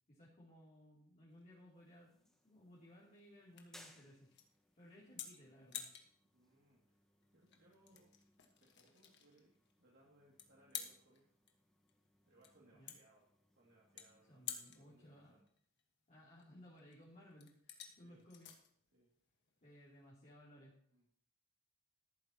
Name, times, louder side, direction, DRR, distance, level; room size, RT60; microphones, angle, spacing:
voice 1, 0.1-4.3 4.8-5.9 12.7-13.0 14.3-15.4 16.1-17.7 18.0-18.5 19.6-20.7, equal, 35° left, -7 dB, 3.0 m, -60 dB
sound 1, 1.3-20.1, left 9 dB, 55° left, 1.5 m, -54 dB
sound 2, 1.7-15.4, left 1 dB, ahead, 1.4 m, -69 dB
voice 2, 4.8-5.2 6.3-7.0 7.3-8.1 8.5-11.2 12.2-13.2 13.6-15.4 18.0-18.2 18.9-19.1 20.9-21.0, right 1 dB, 60° right, -4 dB, 2.4 m, -70 dB
14.0 x 11.0 x 3.0 m, 0.64 s
head